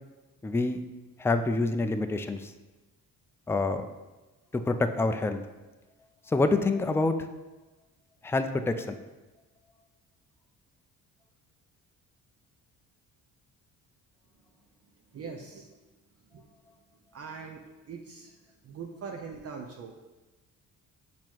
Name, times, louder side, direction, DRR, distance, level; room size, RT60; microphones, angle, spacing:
voice 1, 0.4-0.8 1.2-2.5 3.5-3.9 4.5-5.4 6.3-7.2 8.2-9.0, left 3 dB, 10° left, 8 dB, 0.3 m, -27 dB
voice 2, 15.1-15.7 16.3-16.5 17.1-18.4 18.6-20.0, right 5 dB, 45° right, 2 dB, 0.7 m, -42 dB
7.1 x 3.0 x 4.5 m, 1.2 s
cardioid pair, 100°, 34 cm